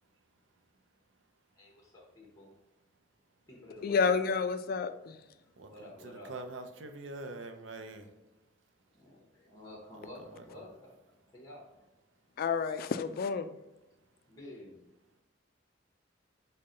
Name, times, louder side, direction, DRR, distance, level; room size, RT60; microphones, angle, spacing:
voice 1, 1.6-2.5 3.5-4.2 5.6-6.3 8.9-11.9 14.3-14.8, left 1 dB, 15° left, -2 dB, 0.9 m, -50 dB
voice 2, 3.8-5.2 12.4-13.6, left 5 dB, 50° left, 11 dB, 0.3 m, -30 dB
voice 3, 5.5-8.1 10.2-10.7, right 2 dB, 75° right, 6 dB, 0.5 m, -45 dB
5.4 x 2.2 x 3.7 m, 1.0 s
head